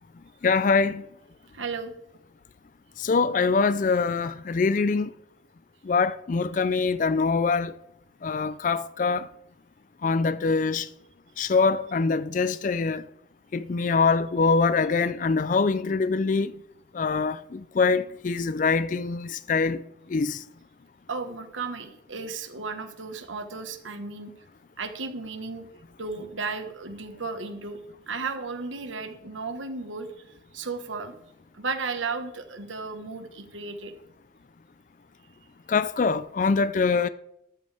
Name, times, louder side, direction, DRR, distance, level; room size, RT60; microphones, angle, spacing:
voice 1, 0.4-1.0 3.0-5.1 5.9-7.7 8.2-9.3 10.0-10.9 11.4-13.0 13.5-16.5 16.9-19.8 20.1-20.4 35.7-37.1, left 4 dB, 40° left, 0.4 m, -24 dB
voice 2, 1.5-1.9 21.1-24.3 24.8-25.7 26.0-27.8 28.1-30.1 30.5-31.1 31.5-33.9, right 4 dB, 85° right, 1.4 m, -34 dB
13.5 x 13.0 x 3.4 m
head